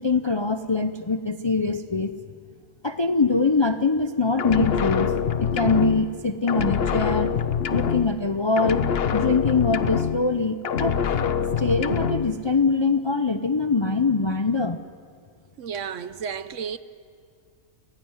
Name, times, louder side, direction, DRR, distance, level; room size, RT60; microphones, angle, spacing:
voice 1, 0.0-2.1 2.8-5.1 5.4-7.3 7.7-8.8 9.1-11.0 11.6-14.8, left 4 dB, 30° left, 0.5 m, -23 dB
sound 1, 4.4-6.2 6.5-8.3 8.6-10.4 10.6-12.3, left 7 dB, 50° left, 0.9 m, -25 dB
voice 2, 15.6-16.8, right 7 dB, 60° right, 1.1 m, -32 dB
29.0 x 17.0 x 9.6 m
omnidirectional pair, 1.5 m